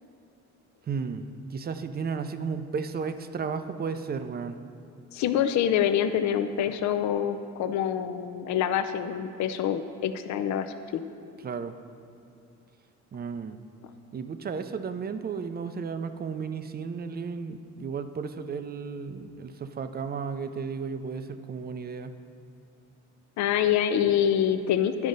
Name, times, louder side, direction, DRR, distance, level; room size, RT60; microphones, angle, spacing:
voice 1, 0.9-4.6 11.4-11.8 13.1-13.6 14.1-22.2, right 5 dB, 30° right, 10 dB, 0.4 m, -34 dB
voice 2, 5.1-11.0 23.4-25.1, left 9 dB, 65° left, 9 dB, 0.5 m, -26 dB
10.5 x 5.0 x 3.9 m, 2.7 s
cardioid pair, 90°, 30 cm